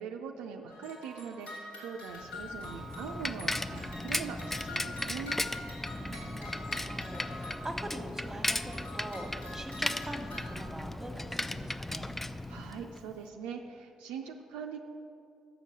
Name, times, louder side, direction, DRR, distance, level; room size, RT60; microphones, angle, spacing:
voice 1, 0.0-5.4 12.5-14.8, right 6 dB, 75° right, 3 dB, 0.4 m, -42 dB
sound 1, 0.7-8.1 8.5-10.6, left 2 dB, 70° left, 2.4 m, -46 dB
Bicycle, 2.2-13.1, left 1 dB, 10° left, 0.4 m, -36 dB
voice 2, 5.9-12.1, right 1 dB, 15° right, 5 dB, 1.2 m, -44 dB
7.0 x 6.6 x 7.2 m, 2.5 s
hypercardioid pair, 40°, 2 cm